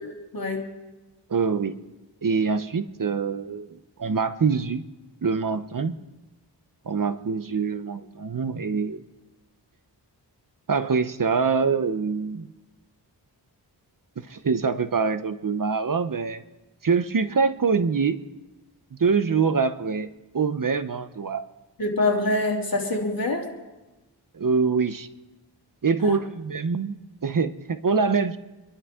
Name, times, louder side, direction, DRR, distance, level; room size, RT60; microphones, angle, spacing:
voice 1, 0.0-0.7 21.8-23.5 26.0-26.2, left 2 dB, 55° left, 0 dB, 2.9 m, -25 dB
voice 2, 1.3-1.8 2.2-4.8 5.2-6.0 6.8-9.0 10.7-12.5 14.2-16.4 16.8-18.2 18.9-21.4 24.3-25.1 25.8-28.4, right 5 dB, 50° right, 11 dB, 0.8 m, -24 dB
25.5 x 12.0 x 3.7 m, 1.1 s
wide cardioid pair, 60°, 42 cm